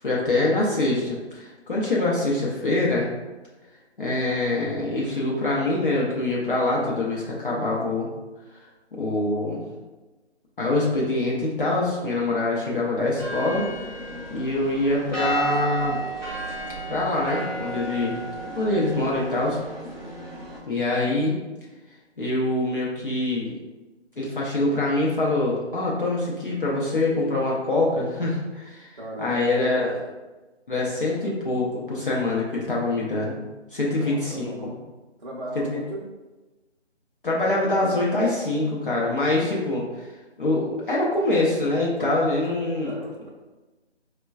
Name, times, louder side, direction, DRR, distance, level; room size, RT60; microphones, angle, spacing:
voice 1, 0.0-3.1 4.0-8.1 8.9-9.6 10.6-13.6 14.3-16.0 16.9-18.2 18.6-19.6 20.7-21.4 22.2-23.6 24.2-28.9 29.2-29.9 30.7-33.4 33.7-34.5 35.7-35.8 37.2-39.8 40.4-42.9, left 2 dB, 50° left, -5 dB, 0.6 m, -24 dB
sound 1, 13.2-20.6, right 2 dB, 15° left, 0.7 m, -33 dB
voice 2, 28.9-29.9 33.8-34.9 35.2-36.0 42.8-43.3, right 1 dB, 40° right, -8 dB, 0.5 m, -36 dB
4.2 x 2.2 x 2.3 m, 1.2 s
figure-of-eight pair, 170°, 35 cm